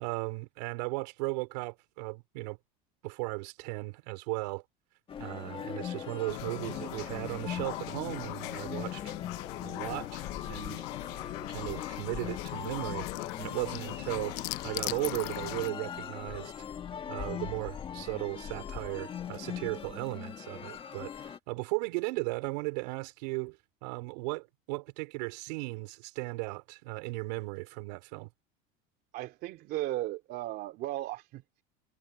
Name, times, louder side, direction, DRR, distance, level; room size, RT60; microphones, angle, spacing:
voice 1, 0.0-2.6 3.0-4.6 5.2-9.1 9.6-10.2 10.5-10.8 11.5-13.1 13.4-14.4 14.6-16.5 17.1-28.3, right 26 dB, 80° right, 4.9 m, -36 dB
sound 1, 5.1-21.4, left 8 dB, 25° left, 1.6 m, -41 dB
sound 2, 6.3-15.7, left 22 dB, 70° left, 0.8 m, -39 dB
voice 2, 29.1-31.4, right 16 dB, 50° right, 2.7 m, -36 dB
cardioid pair, 155°, 21 cm